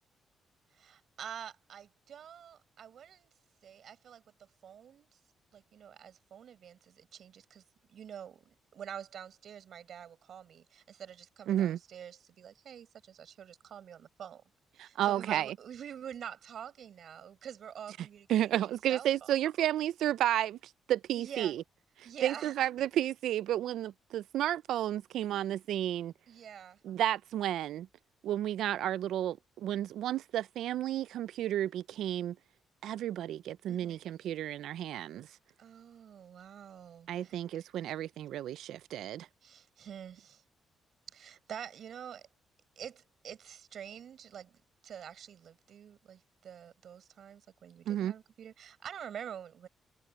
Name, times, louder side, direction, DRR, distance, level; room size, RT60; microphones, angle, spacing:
voice 1, 0.7-3.3 3.6-4.2 4.6-5.2 5.5-7.6 7.9-14.4 14.8-18.4 18.9-19.1 21.2-21.5 22.0-22.6 26.3-26.8 33.7-34.0 35.6-37.4 39.4-40.4 41.1-42.3 42.8-44.6 44.8-49.7, right 9 dB, 50° right, 5.7 m, -47 dB
voice 2, 11.5-11.8 14.8-15.5 18.3-20.6 20.9-21.6 22.0-26.1 26.8-27.9 28.2-32.4 32.8-35.3 37.1-39.3 47.9-48.1, right 12 dB, 75° right, 0.3 m, -32 dB
cardioid pair, 170°, 0 cm